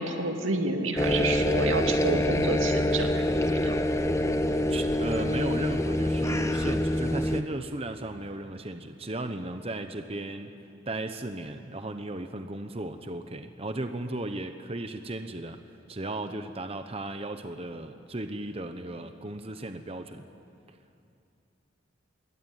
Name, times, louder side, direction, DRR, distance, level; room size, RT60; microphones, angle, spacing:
voice 1, 0.0-3.2 3.6-3.8, right 2 dB, 90° right, 4 dB, 2.5 m, -29 dB
sound 1, 1.0-7.4, left 1 dB, 15° left, 1.0 m, -26 dB
voice 2, 4.7-10.5 10.9-15.6 15.9-20.2, right 2 dB, 30° right, 8 dB, 1.0 m, -35 dB
26.0 x 22.5 x 9.8 m, 2.6 s
head